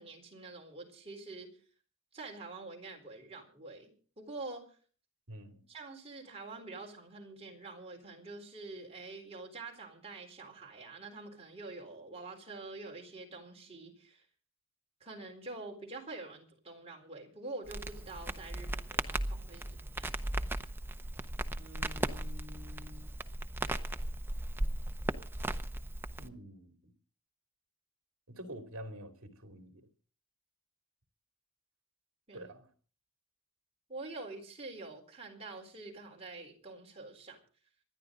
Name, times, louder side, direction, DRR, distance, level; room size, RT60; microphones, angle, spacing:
voice 1, 0.0-1.5 2.1-4.8 5.7-14.3 15.0-20.2 32.3-32.5 33.9-37.4, right 3 dB, 25° right, 4.0 m, -46 dB
voice 2, 5.3-5.6 21.6-23.1 26.2-26.7 28.3-29.8 32.3-32.7, equal, 65° right, 2.7 m, -48 dB
Crackle, 17.7-26.3, right 1 dB, 10° right, 0.7 m, -37 dB
26.5 x 10.5 x 3.9 m
head